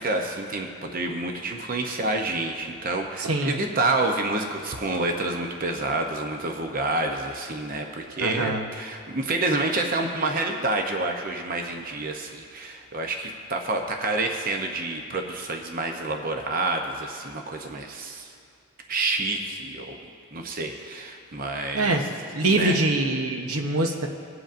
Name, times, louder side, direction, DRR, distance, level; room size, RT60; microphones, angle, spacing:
voice 1, 0.0-18.3 18.9-20.0 20.3-22.0 22.5-22.8, right 2 dB, 40° right, 3 dB, 0.7 m, -28 dB
voice 2, 3.2-3.6 8.2-8.7 21.7-22.0 22.3-24.1, right 2 dB, 85° right, 3 dB, 1.0 m, -24 dB
21.5 x 7.9 x 2.6 m, 2.4 s
head